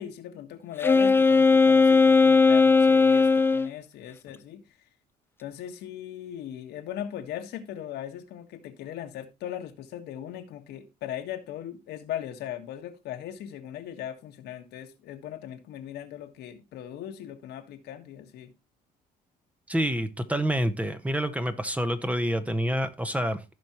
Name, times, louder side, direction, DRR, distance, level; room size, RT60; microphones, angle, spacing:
voice 1, 0.0-4.6 5.4-18.5, left 11 dB, 80° left, 1.6 m, -38 dB
Wind instrument woodwind instrument, 0.8-3.7, left 4 dB, 15° left, 0.5 m, -18 dB
voice 2, 19.7-23.4, equal, 10° right, 1.0 m, -27 dB
15.5 x 5.3 x 3.0 m
cardioid pair, 110°, 17 cm